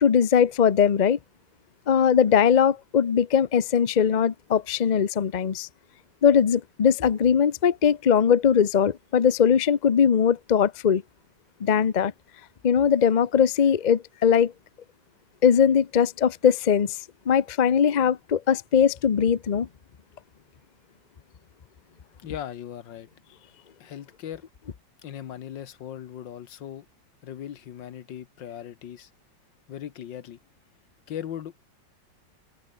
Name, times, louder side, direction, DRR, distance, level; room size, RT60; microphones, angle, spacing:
voice 1, 0.0-1.2 1.9-5.7 6.2-11.0 11.6-12.1 12.6-14.5 15.4-17.0 17.3-19.7, left 7 dB, 50° left, 0.5 m, -20 dB
voice 2, 22.2-23.1 23.8-24.4 25.0-26.9 27.2-29.1 29.7-30.4 31.1-31.7, left 10 dB, 85° left, 1.9 m, -38 dB
omnidirectional pair, 1.9 m